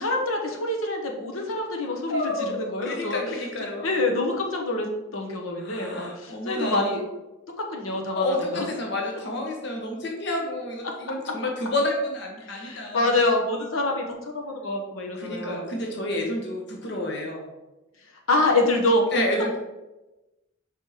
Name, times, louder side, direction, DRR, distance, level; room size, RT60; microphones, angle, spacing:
voice 1, 0.0-3.5 3.8-7.0 7.6-8.7 12.4-15.7 18.3-19.1, left 2 dB, 80° left, 2 dB, 1.1 m, -26 dB
voice 2, 2.1-3.9 5.6-6.9 8.2-13.1 15.1-17.4 19.1-19.6, left 1 dB, 55° left, 0 dB, 1.1 m, -29 dB
5.2 x 4.6 x 4.9 m, 1.0 s
head